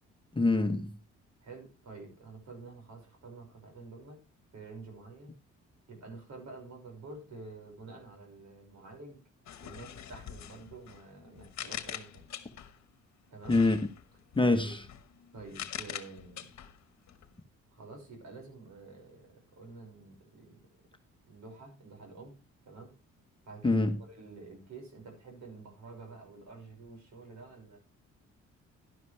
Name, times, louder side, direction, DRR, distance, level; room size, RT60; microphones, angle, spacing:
voice 1, 0.3-0.9 13.5-13.8 14.4-14.8 23.6-23.9, left 2 dB, 15° left, 1.2 m, -25 dB
voice 2, 1.4-4.2 4.5-5.3 5.9-9.2 9.6-12.2 13.3-13.6 14.6-14.8 15.3-16.5 17.7-20.6 21.2-22.3 22.7-22.9 23.5-27.8, right 3 dB, 65° right, 5.9 m, -49 dB
sound 1, 9.5-12.8 13.4-17.3, left 10 dB, 60° left, 1.2 m, -44 dB
11.5 x 10.5 x 3.3 m
cardioid pair, 90°, 30 cm